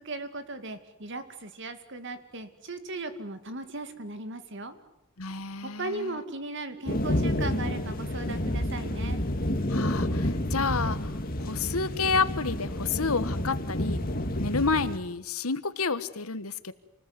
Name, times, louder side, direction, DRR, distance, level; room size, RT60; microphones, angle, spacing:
voice 1, 0.0-4.7 5.6-9.2, right 2 dB, 55° right, 9 dB, 2.4 m, -37 dB
voice 2, 5.2-6.2 9.7-14.0 14.4-16.7, left 4 dB, 90° left, 13 dB, 1.5 m, -30 dB
sound 1, 6.9-15.0, left 1 dB, 45° left, 2.4 m, -29 dB
28.5 x 20.5 x 9.6 m, 0.85 s
head